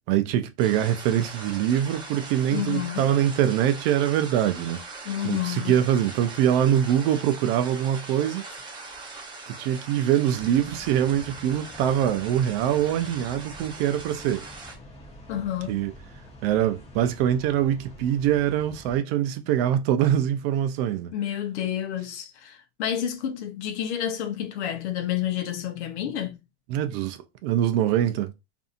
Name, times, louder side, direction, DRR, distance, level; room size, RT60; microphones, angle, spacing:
voice 1, 0.1-8.4 9.5-14.5 15.7-15.9 16.4-21.1 26.7-28.3, right 10 dB, 55° right, 0.5 m, -24 dB
sound 1, 0.6-14.7, right 3 dB, 15° right, 0.7 m, -41 dB
voice 2, 2.5-3.1 5.0-5.8 15.3-15.8 21.1-26.4, left 10 dB, 75° left, 0.8 m, -29 dB
sound 2, 10.3-19.0, equal, 20° left, 0.8 m, -46 dB
2.6 x 2.6 x 2.4 m
supercardioid pair, 130°, 34 cm